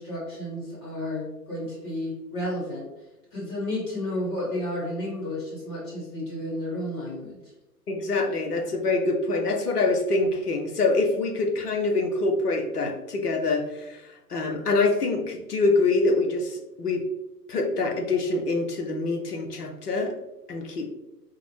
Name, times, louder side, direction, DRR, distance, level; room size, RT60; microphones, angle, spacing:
voice 1, 0.0-2.9 3.3-7.4, left 1 dB, 25° left, -7 dB, 1.2 m, -32 dB
voice 2, 7.9-17.0 17.5-20.1 20.5-20.9, left 3 dB, 70° left, 4 dB, 0.8 m, -25 dB
3.7 x 2.0 x 3.1 m, 0.98 s
figure-of-eight pair, 125°, 47 cm